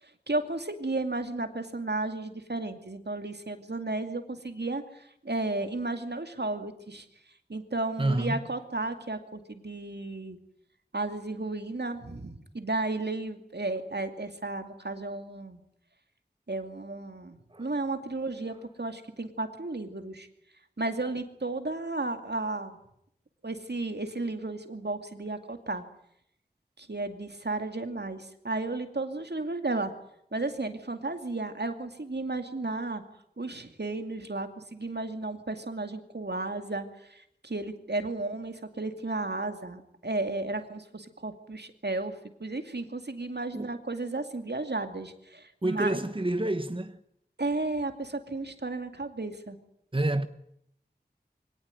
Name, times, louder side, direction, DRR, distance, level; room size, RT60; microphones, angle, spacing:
voice 1, 0.0-7.1 7.5-10.4 10.9-15.6 16.5-20.3 20.8-22.8 23.4-25.8 26.8-29.9 30.3-33.0 33.4-46.0 47.4-49.6, right 2 dB, 75° right, 2.5 m, -33 dB
voice 2, 8.0-8.4 17.5-17.7 43.5-43.7 45.6-47.0 49.9-50.3, right 1 dB, 30° right, 1.1 m, -28 dB
23.5 x 18.0 x 9.4 m
wide cardioid pair, 45°, 17 cm